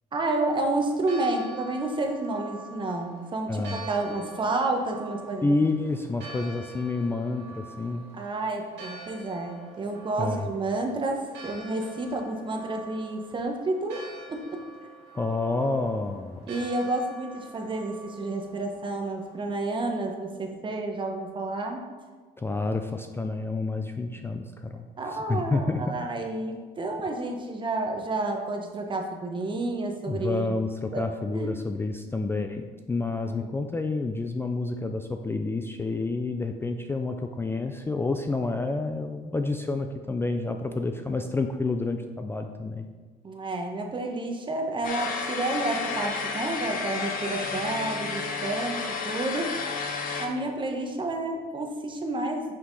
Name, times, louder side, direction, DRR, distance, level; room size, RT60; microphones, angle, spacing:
voice 1, 0.1-5.6 5.8-6.0 8.1-14.0 14.3-14.6 15.1-15.2 16.5-21.8 25.0-30.5 30.9-31.0 31.3-31.5 33.3-33.5 43.2-49.5 50.2-52.5, right 2 dB, 30° right, 3 dB, 1.0 m, -30 dB
Church bell, 0.7-20.1, right 4 dB, 85° right, 1.7 m, -46 dB
voice 2, 3.5-3.9 5.4-8.0 10.2-10.5 15.1-16.5 22.4-24.9 25.3-25.8 30.1-42.9, left 3 dB, 15° left, 5 dB, 0.3 m, -29 dB
sound 1, 44.8-50.3, left 5 dB, 55° left, 0.8 m, -31 dB
5.7 x 5.6 x 4.0 m, 1.4 s
cardioid pair, 110°, 17 cm